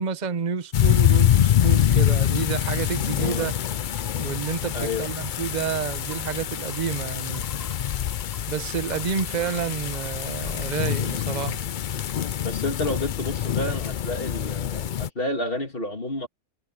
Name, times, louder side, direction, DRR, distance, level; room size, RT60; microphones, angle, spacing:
voice 1, 0.0-3.5 4.2-7.5 8.5-11.6, right 7 dB, 35° right, 1.0 m, -29 dB
sound 1, 0.7-15.1, left 10 dB, 75° left, 0.4 m, -25 dB
Liquid, 1.2-13.1, left 1 dB, 15° left, 7.9 m, -48 dB
voice 2, 4.7-5.1 12.4-16.3, left 2 dB, 40° left, 3.0 m, -30 dB
omnidirectional pair, 1.5 m